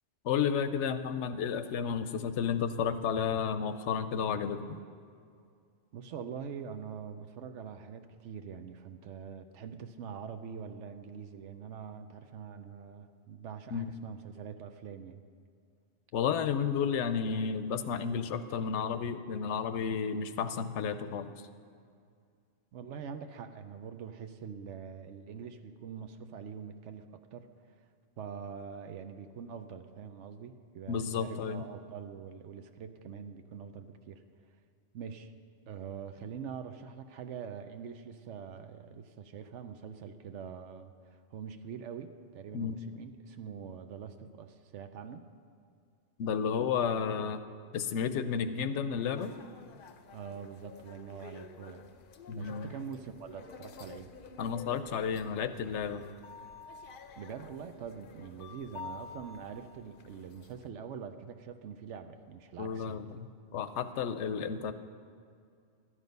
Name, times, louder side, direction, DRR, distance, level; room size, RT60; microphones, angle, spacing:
voice 1, 0.2-4.8 13.7-13.9 16.1-21.3 30.9-31.6 42.5-42.8 46.2-47.4 47.7-49.3 52.3-52.7 54.4-56.0 62.6-63.3 63.5-64.7, left 7 dB, 80° left, 11 dB, 0.9 m, -32 dB
voice 2, 5.9-15.2 22.7-27.5 28.2-34.2 34.9-35.3 35.7-45.3 50.1-51.8 52.4-54.1 57.2-63.0, right 7 dB, 85° right, 8 dB, 1.0 m, -44 dB
sound 1, 49.1-60.7, left 5 dB, 55° left, 0.7 m, -50 dB
13.0 x 9.9 x 5.3 m, 2.2 s
omnidirectional pair, 1.2 m